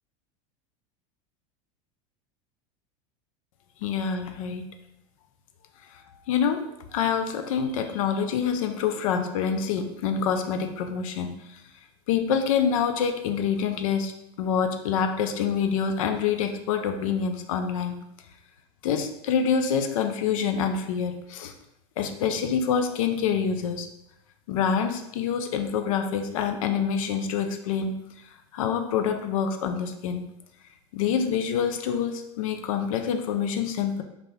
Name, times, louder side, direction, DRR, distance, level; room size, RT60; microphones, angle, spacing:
voice 1, 3.8-4.6 5.9-6.0 6.3-6.6 6.9-11.6 12.1-14.1 14.4-18.0 18.8-21.5 22.0-23.9 24.5-27.9 28.5-30.2 30.9-34.0, left 7 dB, 85° left, 7 dB, 0.4 m, -26 dB
2.6 x 2.6 x 3.2 m, 0.84 s
supercardioid pair, 125°, 17 cm